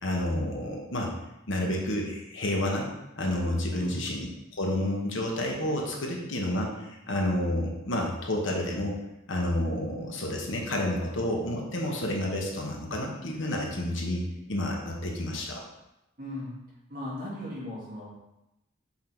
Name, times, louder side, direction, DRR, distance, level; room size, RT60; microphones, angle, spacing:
voice 1, 0.0-1.1 1.5-2.9 3.2-4.3 4.5-9.0 9.3-14.2 14.5-15.6, left 1 dB, 70° left, 0 dB, 1.1 m, -30 dB
voice 2, 3.7-4.1 16.2-16.6 16.9-18.1, left 1 dB, 45° right, -7 dB, 2.1 m, -37 dB
5.7 x 3.8 x 4.4 m, 0.93 s
head